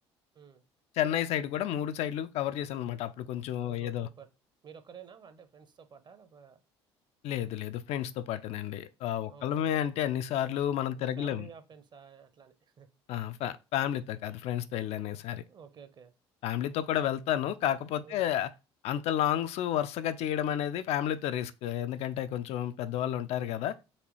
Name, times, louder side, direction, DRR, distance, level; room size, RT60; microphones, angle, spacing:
voice 1, 0.9-4.1 7.2-11.5 13.1-15.4 16.4-18.5 18.8-23.8, left 11 dB, 45° left, 0.3 m, -31 dB
voice 2, 3.6-4.3 4.6-6.6 9.3-9.9 10.9-12.9 15.4-16.1 18.0-18.3, right 7 dB, 30° right, 0.7 m, -52 dB
4.1 x 2.8 x 3.0 m
figure-of-eight pair, 55°, 14 cm